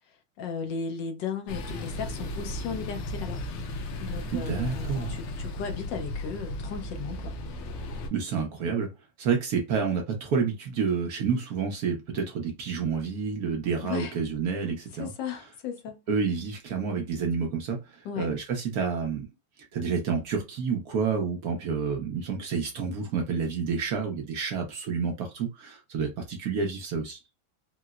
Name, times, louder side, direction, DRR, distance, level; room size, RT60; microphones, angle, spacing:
voice 1, 0.1-3.4 4.0-7.4 13.8-14.1 15.0-16.0 18.0-18.3, left 6 dB, 70° left, 1.2 m, -36 dB
sound 1, 1.5-8.1, left 1 dB, 85° left, 1.6 m, -35 dB
voice 2, 4.3-5.2 8.1-8.9 9.2-15.1 16.1-19.2 19.7-27.2, right 5 dB, 70° right, 0.9 m, -29 dB
4.6 x 2.0 x 2.3 m
omnidirectional pair, 2.4 m